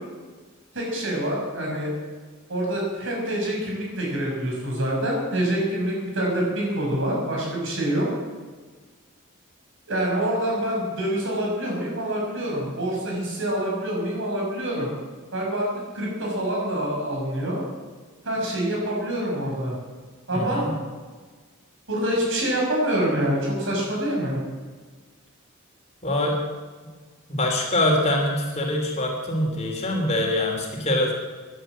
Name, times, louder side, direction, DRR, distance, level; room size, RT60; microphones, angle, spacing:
voice 1, 0.7-1.9 2.5-8.1 9.9-14.9 15.3-15.7 15.9-17.6 18.2-19.8 20.3-20.7 21.9-24.4, right 1 dB, 65° right, -2 dB, 6.3 m, -26 dB
voice 2, 20.3-20.7 26.0-26.4 27.3-31.1, left 1 dB, 30° left, 0 dB, 3.2 m, -24 dB
15.5 x 11.0 x 7.6 m, 1.4 s
head